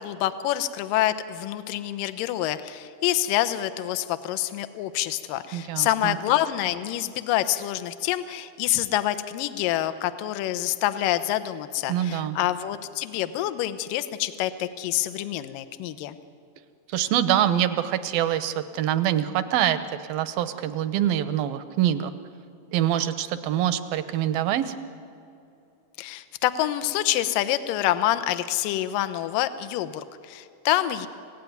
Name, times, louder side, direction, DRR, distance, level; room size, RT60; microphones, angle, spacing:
voice 1, 0.0-16.2 26.0-31.1, left 13 dB, 70° left, 11 dB, 2.4 m, -27 dB
voice 2, 5.5-6.2 11.9-12.4 16.9-19.8 20.1-22.1 22.7-24.7, right 11 dB, 75° right, 11 dB, 2.5 m, -25 dB
29.0 x 17.0 x 9.5 m, 2.6 s
omnidirectional pair, 4.5 m